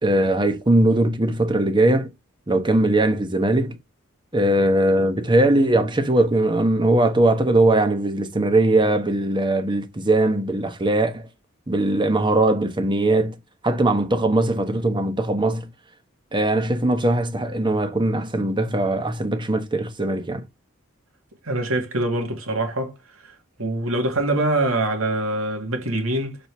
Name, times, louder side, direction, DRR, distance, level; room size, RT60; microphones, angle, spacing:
voice 1, 0.0-2.1 2.5-3.8 4.3-11.3 11.7-13.4 13.6-15.7 16.3-20.4, right 1 dB, 25° right, 1.1 m, -20 dB
voice 2, 21.4-22.9 23.2-23.3 23.6-26.4, right 2 dB, 85° right, 2.2 m, -24 dB
6.6 x 4.4 x 3.4 m
head